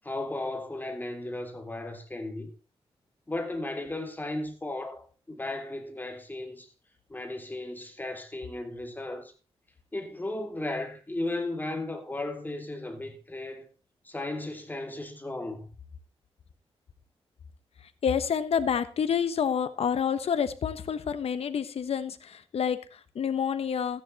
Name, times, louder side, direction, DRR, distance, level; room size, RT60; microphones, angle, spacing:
voice 1, 0.0-2.5 3.3-6.7 7.1-9.3 9.9-13.7 14.0-15.7, left 2 dB, 15° left, 2.9 m, -35 dB
voice 2, 18.0-24.0, left 7 dB, 75° left, 1.2 m, -28 dB
14.0 x 10.0 x 4.2 m
wide cardioid pair, 95°, 10 cm